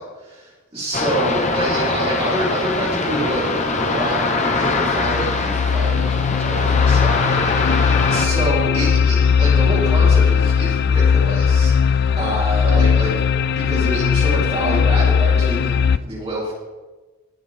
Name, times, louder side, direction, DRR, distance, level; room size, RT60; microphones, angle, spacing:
voice 1, 0.0-7.8 8.1-13.1 13.4-16.5, right 1 dB, 30° right, -6 dB, 4.2 m, -27 dB
sound 1, 0.9-8.3, left 3 dB, 35° left, 1.2 m, -22 dB
sound 2, 4.6-16.0, left 6 dB, 50° left, 0.3 m, -18 dB
18.5 x 7.2 x 3.7 m, 1.2 s
head